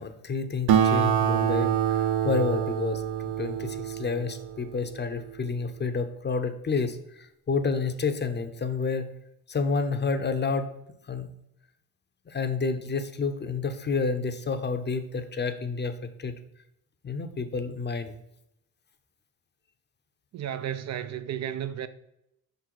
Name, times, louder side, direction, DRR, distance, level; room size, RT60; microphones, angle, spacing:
voice 1, 0.0-1.8 2.2-9.1 9.5-10.7 11.1-11.3 12.3-15.9 16.2-16.3 17.0-18.1, left 4 dB, 25° left, 0.6 m, -29 dB
Acoustic guitar, 0.7-5.5, right 9 dB, 85° right, 0.7 m, -26 dB
voice 2, 20.3-21.9, right 10 dB, 45° right, 0.5 m, -33 dB
5.3 x 3.9 x 4.5 m
cardioid pair, 70°, 38 cm